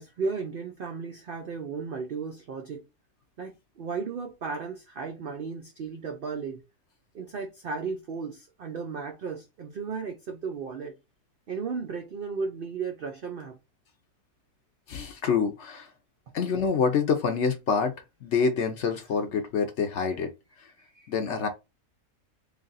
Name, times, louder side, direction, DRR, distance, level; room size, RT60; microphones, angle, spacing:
voice 1, 0.0-2.8 3.4-6.6 7.1-10.9 11.5-13.6 20.8-21.1, right 5 dB, 75° right, 0.5 m, -35 dB
voice 2, 14.9-15.9 16.3-17.9 18.2-20.3 21.1-21.5, left 5 dB, 60° left, 0.8 m, -26 dB
3.3 x 2.4 x 3.9 m
omnidirectional pair, 1.6 m